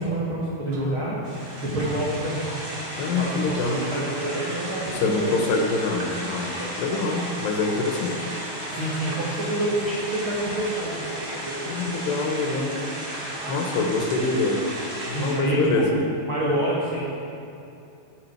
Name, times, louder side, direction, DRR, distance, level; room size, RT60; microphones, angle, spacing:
voice 1, 0.0-2.4 3.1-5.4 6.6-6.7 8.6-11.1 11.4-11.8 15.1-15.9 16.3-17.1, right 1 dB, 85° right, -6 dB, 1.1 m, -28 dB
sound 1, 0.7-1.3 1.7-2.9 3.8-4.7 5.9-6.4 6.9-7.4 8.7-9.6 10.9-11.8 13.4-14.2, right 3 dB, 70° right, 3.1 m, -45 dB
sound 2, 1.2-15.3, right 1 dB, 40° right, 3.4 m, -34 dB
voice 2, 3.0-3.9 4.9-6.5 6.8-8.3 11.7-12.7 13.5-14.6 15.0-15.9, left 3 dB, 85° left, 1 dB, 3.3 m, -25 dB
14.5 x 8.3 x 4.6 m, 2.7 s
omnidirectional pair, 4.8 m